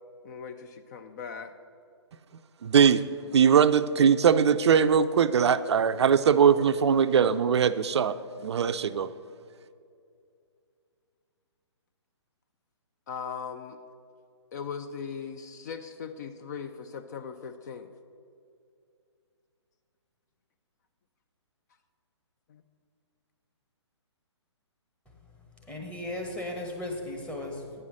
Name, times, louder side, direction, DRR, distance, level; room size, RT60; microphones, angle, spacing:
voice 1, 0.2-1.5 13.1-13.8 14.5-17.9 22.5-22.6, left 6 dB, 35° left, 9 dB, 0.4 m, -39 dB
voice 2, 2.6-8.2 8.4-9.1, right 7 dB, 65° right, 12 dB, 0.4 m, -21 dB
voice 3, 25.7-27.8, left 1 dB, 10° left, 0 dB, 1.1 m, -36 dB
9.4 x 5.5 x 6.2 m, 2.4 s
hypercardioid pair, 135°, 15 cm